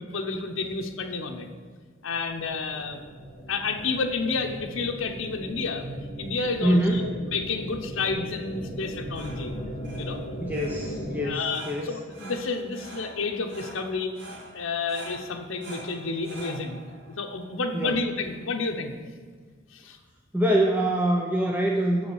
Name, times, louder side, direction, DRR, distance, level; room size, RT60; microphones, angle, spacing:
voice 1, 0.1-1.5 2.0-3.0 3.5-5.9 6.2-9.5 10.0-10.2 11.2-14.1 14.5-16.8 17.2-18.9 19.7-20.0, left 4 dB, 70° left, 4 dB, 0.8 m, -30 dB
sound 1, 2.1-11.3, equal, 35° left, 1.6 m, -38 dB
voice 2, 6.6-7.0 10.4-11.9 17.7-18.0 20.3-22.1, right 1 dB, 10° right, -1 dB, 0.5 m, -24 dB
sound 2, 8.8-18.5, right 1 dB, 60° right, 1.9 m, -46 dB
6.9 x 4.9 x 6.9 m, 1.6 s
head